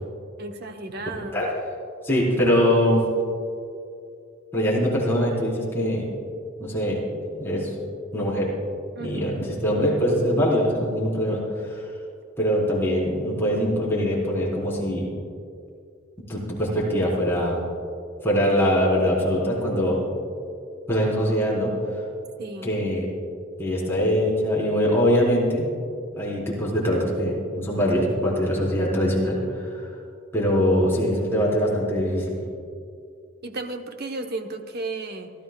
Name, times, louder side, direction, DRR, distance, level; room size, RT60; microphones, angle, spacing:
voice 1, 0.4-1.4 8.9-9.3 22.4-22.7 33.4-35.3, right 2 dB, 50° right, 5 dB, 0.9 m, -34 dB
voice 2, 2.0-3.0 4.5-6.1 6.6-7.7 8.1-8.5 9.0-11.8 12.4-15.1 16.3-17.6 18.2-20.0 20.9-21.7 22.6-23.1 23.6-25.7 26.1-29.8 30.3-32.4, equal, 10° left, -6 dB, 4.1 m, -23 dB
26.5 x 13.5 x 2.3 m, 2.4 s
head